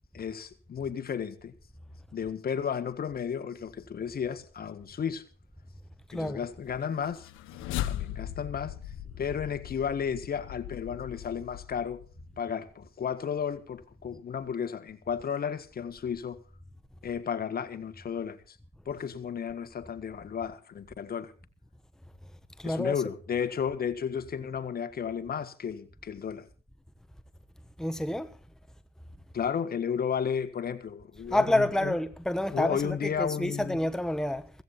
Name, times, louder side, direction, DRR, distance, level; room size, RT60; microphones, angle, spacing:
voice 1, 0.1-1.5 2.1-5.2 6.1-7.3 7.8-8.7 9.2-12.0 12.4-16.4 17.0-18.5 18.8-21.3 22.6-26.5 29.3-31.9 32.5-33.8, left 7 dB, 50° left, 1.7 m, -33 dB
voice 2, 6.1-6.5 22.6-23.0 27.8-28.3 31.3-34.5, left 1 dB, 5° left, 1.2 m, -28 dB
sound 1, 7.1-12.4, left 13 dB, 85° left, 1.0 m, -38 dB
16.5 x 15.5 x 4.3 m
supercardioid pair, 75°, 20 cm